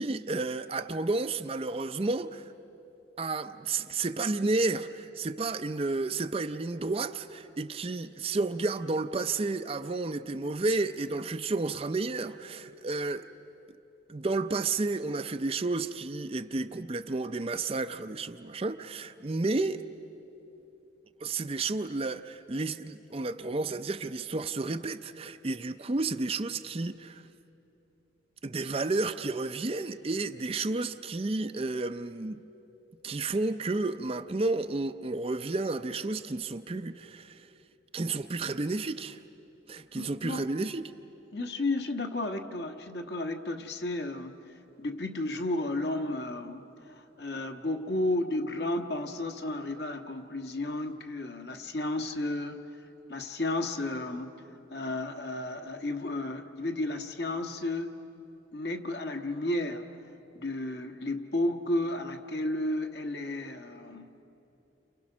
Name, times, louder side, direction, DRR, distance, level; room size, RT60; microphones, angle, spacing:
voice 1, 0.0-2.4 3.2-13.2 14.1-19.8 21.2-27.2 28.4-32.4 33.0-37.5 37.9-39.2 39.7-40.8, right 3 dB, 30° right, 0.5 m, -31 dB
voice 2, 39.9-40.4 41.3-44.4 44.8-52.6 53.1-54.4 54.7-57.9 58.5-59.9 60.3-64.1, left 2 dB, 55° left, 1.4 m, -33 dB
29.5 x 28.0 x 6.1 m
head